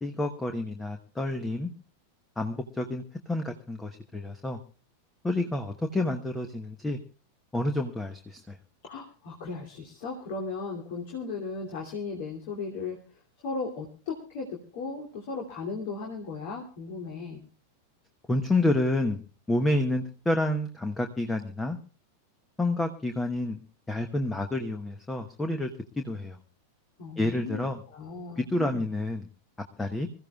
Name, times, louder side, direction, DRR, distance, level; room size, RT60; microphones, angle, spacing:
voice 1, 0.0-1.7 2.4-4.6 5.2-7.0 7.5-8.6 18.3-19.2 19.5-21.8 22.6-25.7 26.0-26.4 27.2-27.8 28.4-29.3 29.8-30.1, left 1 dB, 10° left, 6 dB, 1.1 m, -29 dB
voice 2, 8.8-13.0 13.4-17.4 27.0-28.8, left 4 dB, 50° left, 0 dB, 2.8 m, -36 dB
26.0 x 15.0 x 2.4 m, 0.36 s
figure-of-eight pair, 90°, 0 cm